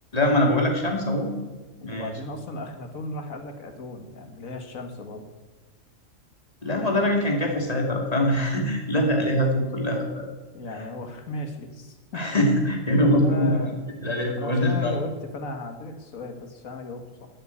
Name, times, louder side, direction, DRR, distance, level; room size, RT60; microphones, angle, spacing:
voice 1, 0.1-1.3 1.8-2.1 6.6-10.3 12.1-13.7 14.0-15.0, left 1 dB, 30° left, 1 dB, 2.6 m, -23 dB
voice 2, 1.8-5.3 10.5-12.3 13.2-13.8 14.4-17.3, left 2 dB, 80° left, 6 dB, 2.0 m, -35 dB
12.0 x 8.2 x 8.3 m, 1.2 s
omnidirectional pair, 1.4 m